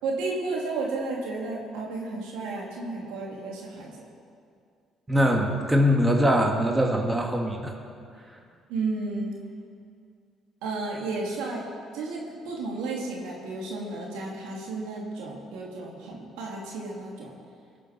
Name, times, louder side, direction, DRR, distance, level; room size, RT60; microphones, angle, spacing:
voice 1, 0.0-4.1 8.7-9.3 10.6-11.6 11.9-17.3, right 3 dB, 85° right, -2 dB, 2.6 m, -32 dB
voice 2, 5.1-7.7, equal, 15° right, 1 dB, 2.2 m, -22 dB
21.0 x 7.4 x 6.1 m, 2.3 s
supercardioid pair, 65°, 0 cm